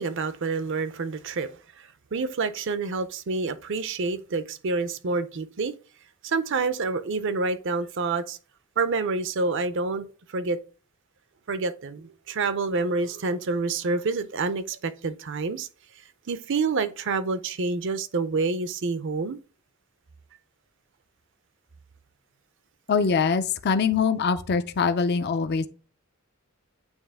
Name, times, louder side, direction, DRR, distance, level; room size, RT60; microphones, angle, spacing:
voice 1, 0.0-1.5 1.8-5.8 6.2-8.4 8.8-10.6 11.5-15.7 16.3-19.4, right 4 dB, 60° right, 0.6 m, -28 dB
voice 2, 22.9-25.7, left 5 dB, 50° left, 0.5 m, -23 dB
8.9 x 3.1 x 3.4 m
head